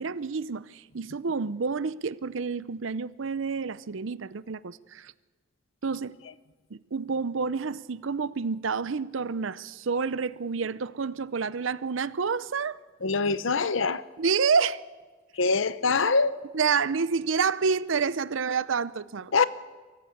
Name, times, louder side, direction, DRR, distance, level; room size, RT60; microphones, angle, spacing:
voice 1, 0.0-5.1 5.8-6.1 6.7-12.8 14.2-14.8 16.5-19.3, right 5 dB, 75° right, 0.6 m, -28 dB
voice 2, 13.0-14.1 15.3-16.5 19.3-19.4, left 4 dB, 75° left, 0.8 m, -24 dB
23.5 x 14.5 x 8.5 m
head